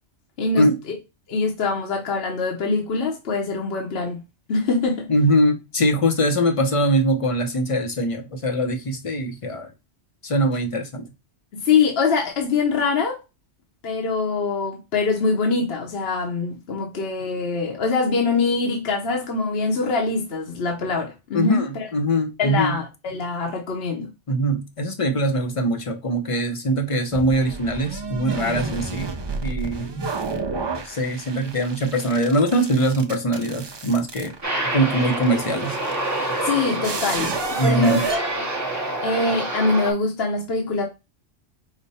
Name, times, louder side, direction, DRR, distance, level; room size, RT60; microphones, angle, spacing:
voice 1, 0.4-1.0 1.3-4.2 4.5-5.1 11.6-13.2 13.8-21.9 22.4-24.1 36.4-38.3 39.0-40.8, left 4 dB, 60° left, 1.0 m, -23 dB
voice 2, 5.1-9.7 10.2-11.0 21.3-22.7 24.3-29.1 29.4-30.1 30.8-34.3 34.7-35.8 37.6-38.0, right 1 dB, 35° left, 0.6 m, -22 dB
sound 1, 27.1-39.1, right 4 dB, 40° right, 0.3 m, -31 dB
Aircraft, 34.4-39.9, right 1 dB, 15° right, 0.8 m, -27 dB
5.1 x 2.2 x 4.1 m
omnidirectional pair, 1.2 m